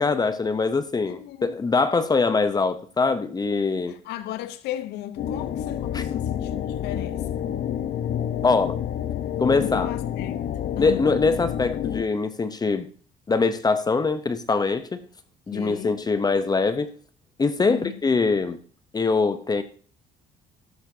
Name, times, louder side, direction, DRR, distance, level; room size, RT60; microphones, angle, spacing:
voice 1, 0.0-3.9 5.9-6.0 8.4-8.8 9.4-9.9 10.8-12.9 13.3-15.0 15.5-16.9 17.4-18.6 18.9-19.6, left 4 dB, 25° left, 0.8 m, -23 dB
voice 2, 1.1-1.6 3.9-7.2 9.6-10.4 10.8-11.0 15.5-16.0 17.6-18.0, left 13 dB, 85° left, 0.7 m, -35 dB
sound 1, 5.2-12.0, left 10 dB, 65° left, 0.9 m, -29 dB
13.0 x 11.5 x 2.8 m
cardioid pair, 110°, 17 cm